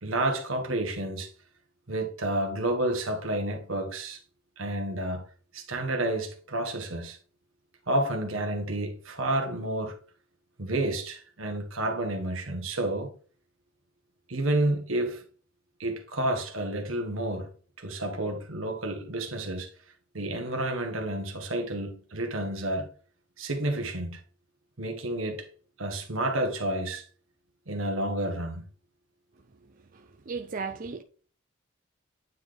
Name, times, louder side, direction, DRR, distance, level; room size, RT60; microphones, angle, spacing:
voice 1, 0.0-1.3 1.9-4.2 4.6-5.2 5.5-7.2 7.9-10.0 10.6-13.1 14.3-15.2 15.8-17.5 17.8-19.7 20.1-22.9 23.4-24.2 24.8-25.5 25.8-27.0 27.7-28.7, right 1 dB, 75° right, 1.5 m, -30 dB
voice 2, 29.9-31.0, right 4 dB, 40° right, 0.5 m, -36 dB
9.4 x 4.2 x 3.3 m
head